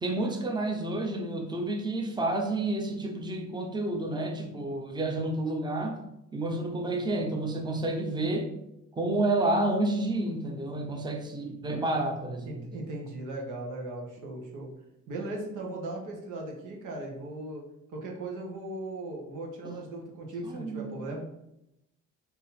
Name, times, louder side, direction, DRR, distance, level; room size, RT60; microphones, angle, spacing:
voice 1, 0.0-6.0 6.3-8.5 9.0-12.6 19.6-19.8 20.4-20.9, right 2 dB, 15° right, 3 dB, 0.7 m, -30 dB
voice 2, 12.4-14.7 15.1-17.6 17.9-21.3, right 2 dB, 90° right, 0 dB, 1.1 m, -38 dB
3.7 x 2.9 x 4.1 m, 0.85 s
cardioid pair, 90°, 30 cm